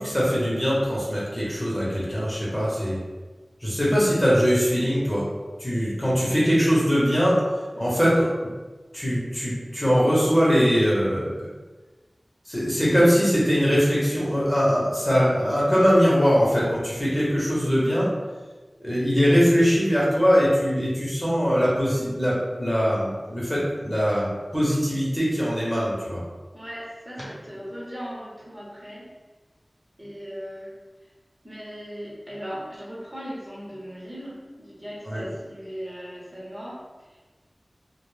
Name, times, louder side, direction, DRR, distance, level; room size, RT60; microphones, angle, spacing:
voice 1, 0.0-3.0 3.6-5.3 5.6-7.4 7.8-8.3 8.9-11.3 12.5-18.1 18.8-26.2 35.1-35.2, equal, 20° left, -6 dB, 0.9 m, -21 dB
voice 2, 26.5-29.1 30.0-30.7 31.0-31.1 31.4-37.3, equal, 20° right, -7 dB, 0.9 m, -38 dB
2.2 x 2.2 x 3.2 m, 1.3 s
wide cardioid pair, 40°, 0 cm